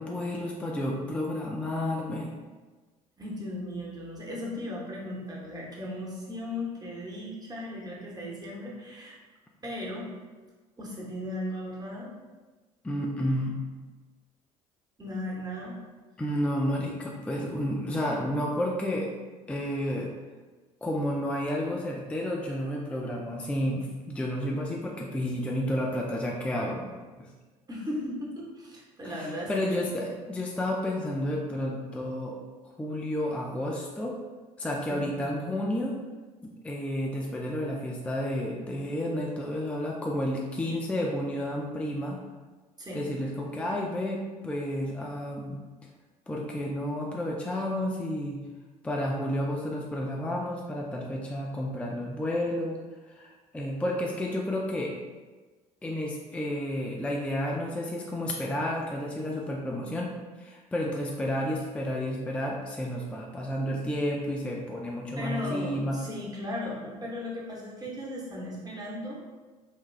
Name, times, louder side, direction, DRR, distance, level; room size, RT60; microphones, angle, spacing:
voice 1, 0.0-2.3 12.8-13.6 16.2-19.1 19.5-20.1 20.8-27.3 29.0-32.4 32.8-34.2 34.6-36.0 36.4-42.2 42.9-45.6 46.3-48.4 48.8-52.8 53.1-54.9 55.8-60.1 60.3-66.0, left 1 dB, 5° left, -1 dB, 0.4 m, -31 dB
voice 2, 3.2-9.2 9.6-10.1 10.8-12.1 15.0-15.8 27.7-29.9 34.9-35.1 42.8-43.0 65.1-69.2, left 1 dB, 20° right, -4 dB, 0.9 m, -36 dB
3.3 x 2.2 x 2.4 m, 1.3 s
hypercardioid pair, 55°, 19 cm